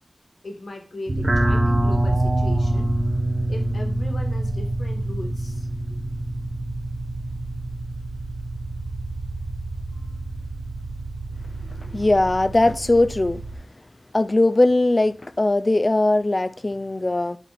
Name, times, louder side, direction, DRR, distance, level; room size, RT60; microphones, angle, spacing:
voice 1, 0.4-2.9 3.5-5.7, left 2 dB, 75° left, 2.0 m, -37 dB
sound 1, 1.1-13.5, right 1 dB, 50° right, 1.7 m, -26 dB
voice 2, 11.8-13.4 14.1-17.4, left 2 dB, 35° left, 0.5 m, -20 dB
12.0 x 4.5 x 4.3 m
wide cardioid pair, 80°, 0 cm